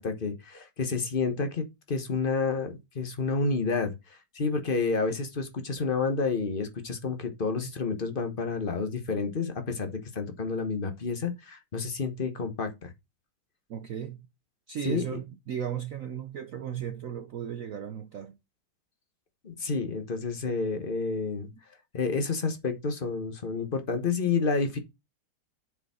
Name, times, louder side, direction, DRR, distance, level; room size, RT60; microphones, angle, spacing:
voice 1, 0.0-12.9 14.8-15.0 19.4-21.5 21.9-24.8, left 4 dB, 35° left, 1.0 m, -30 dB
voice 2, 13.7-14.2 14.7-18.4, right 8 dB, 75° right, 0.7 m, -35 dB
7.3 x 4.9 x 4.3 m
omnidirectional pair, 2.3 m